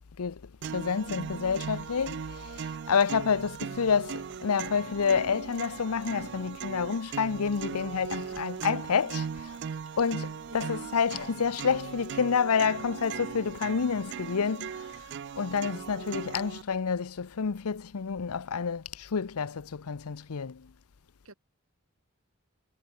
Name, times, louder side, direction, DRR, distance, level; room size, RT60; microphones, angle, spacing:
sound 1, 0.6-16.6, right 7 dB, 50° right, 0.3 m, -39 dB
voice 1, 0.7-9.6 10.0-15.0 15.4-20.7, left 6 dB, 85° left, 0.6 m, -29 dB
voice 2, 10.5-11.0 21.2-21.3, right 3 dB, 70° right, 4.2 m, -49 dB
head